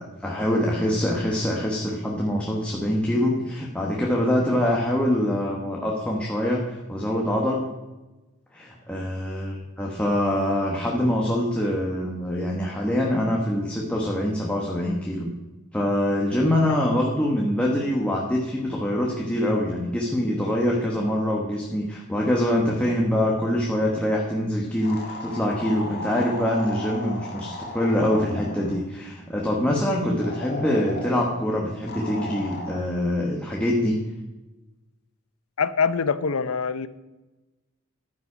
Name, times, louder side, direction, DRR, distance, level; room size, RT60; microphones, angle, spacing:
voice 1, 0.0-7.6 8.5-15.3 15.7-34.0, left 1 dB, 5° left, -3 dB, 1.2 m, -24 dB
sound 1, 24.8-28.8 30.2-31.3 31.9-32.8, left 2 dB, 50° left, 1.8 m, -35 dB
voice 2, 35.6-36.9, left 5 dB, 75° left, 14 dB, 0.6 m, -24 dB
11.5 x 9.3 x 5.0 m, 1.1 s
head